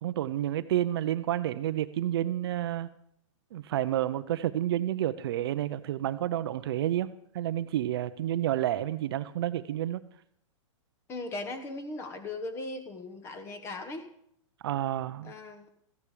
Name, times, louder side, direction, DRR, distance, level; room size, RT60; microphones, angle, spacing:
voice 1, 0.0-2.9 3.5-7.1 7.3-10.0 14.6-15.3, right 12 dB, 50° right, 0.5 m, -30 dB
voice 2, 11.1-14.1 15.2-15.7, left 2 dB, 15° left, 1.0 m, -38 dB
14.5 x 10.0 x 4.9 m
hypercardioid pair, 165°, 17 cm